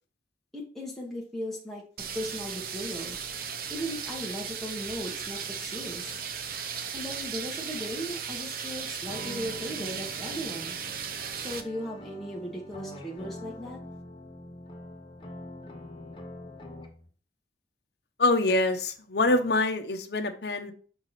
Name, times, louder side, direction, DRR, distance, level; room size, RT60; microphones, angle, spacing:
voice 1, 0.5-1.8 2.1-3.2 3.7-6.1 6.9-10.7 11.4-13.8, equal, ahead, -4 dB, 1.3 m, -37 dB
sound 1, 2.0-11.6, right 7 dB, 55° right, 0.7 m, -36 dB
sound 2, 9.1-17.1, equal, 30° left, 1.0 m, -44 dB
voice 2, 18.2-20.7, left 2 dB, 65° left, 6 dB, 0.9 m, -25 dB
6.3 x 4.7 x 4.1 m, 0.42 s
head